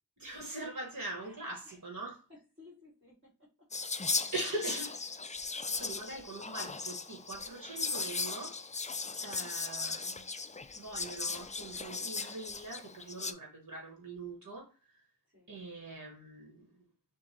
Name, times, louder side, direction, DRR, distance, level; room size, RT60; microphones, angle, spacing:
voice 1, 0.2-2.2 4.3-5.0 5.8-8.8 9.2-10.2 10.7-15.0 15.5-16.8, right 2 dB, 60° right, 1.5 m, -42 dB
voice 2, 1.2-1.8 2.3-3.7 6.2-6.5 15.3-15.5, left 3 dB, 40° right, 2.3 m, -59 dB
Whispering, 3.7-13.3, left 4 dB, 20° left, 0.3 m, -37 dB
6.1 x 2.2 x 2.9 m
wide cardioid pair, 45°, 33 cm